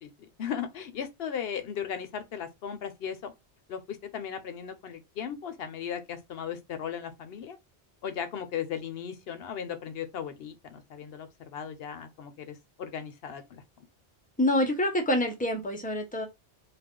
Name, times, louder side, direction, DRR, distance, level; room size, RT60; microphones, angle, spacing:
voice 1, 0.0-3.3 3.7-7.6 8.0-13.6, left 8 dB, 65° left, 0.8 m, -37 dB
voice 2, 14.4-16.3, left 1 dB, 10° left, 0.5 m, -26 dB
2.4 x 2.4 x 3.6 m
omnidirectional pair, 1.2 m